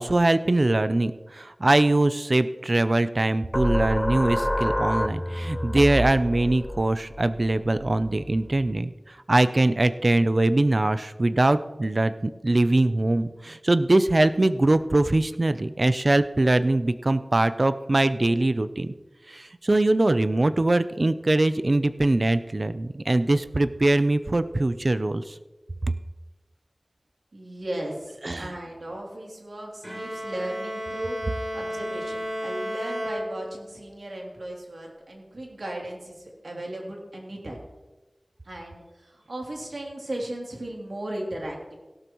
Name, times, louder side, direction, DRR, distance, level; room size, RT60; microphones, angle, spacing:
voice 1, 0.0-18.9 19.3-25.3 28.2-28.5, right 2 dB, 50° right, 12 dB, 0.5 m, -22 dB
sound 1, 3.5-8.8, left 1 dB, 15° left, 0.5 m, -29 dB
voice 2, 27.3-37.6 38.4-41.7, right 1 dB, 75° right, -1 dB, 3.0 m, -36 dB
Bowed string instrument, 29.8-33.8, equal, 15° right, 3.4 m, -33 dB
17.0 x 12.0 x 3.1 m, 1.1 s
wide cardioid pair, 55°, 0 cm